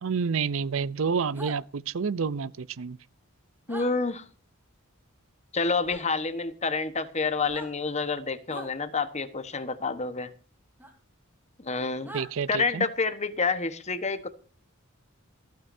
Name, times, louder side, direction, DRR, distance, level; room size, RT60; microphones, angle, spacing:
voice 1, 0.0-3.0 12.1-12.8, right 5 dB, 65° right, 0.5 m, -29 dB
sound 1, 1.3-1.6 3.7-3.9 5.8-6.0 7.4-7.7 8.5-8.7 10.8-10.9 12.0-12.3, right 1 dB, 10° right, 3.8 m, -41 dB
voice 2, 3.7-4.2 5.5-10.3 11.6-12.1 12.5-14.3, left 4 dB, 30° left, 1.2 m, -28 dB
26.5 x 9.3 x 2.7 m
head